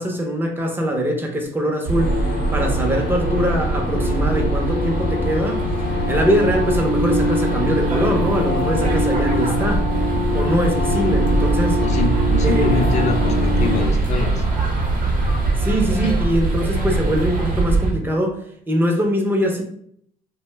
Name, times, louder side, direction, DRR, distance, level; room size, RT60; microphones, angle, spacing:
voice 1, 0.0-5.6 6.1-9.9 10.3-11.8 12.4-12.8 15.6-18.4 18.7-19.6, equal, 10° right, 2 dB, 0.6 m, -22 dB
sound 1, 1.9-13.8, left 1 dB, 80° left, 0.7 m, -23 dB
sound 2, 1.9-17.9, right 3 dB, 50° right, 0.7 m, -22 dB
voice 2, 11.8-14.4 16.0-16.1, left 3 dB, 45° left, 5 dB, 0.5 m, -24 dB
2.5 x 2.1 x 3.3 m, 0.66 s
cardioid pair, 110°, 17 cm